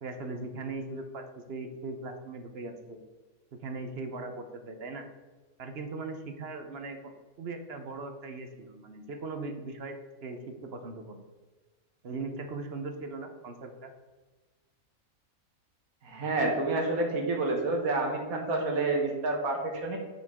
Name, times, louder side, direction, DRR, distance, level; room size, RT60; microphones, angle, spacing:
voice 1, 0.0-3.0 3.5-5.1 5.6-7.0 7.4-9.9 10.2-11.2 12.0-13.9, right 3 dB, 55° right, 6 dB, 0.9 m, -39 dB
voice 2, 16.0-20.0, right 2 dB, 80° right, 1 dB, 1.7 m, -29 dB
8.6 x 5.8 x 3.6 m, 1.3 s
omnidirectional pair, 1.5 m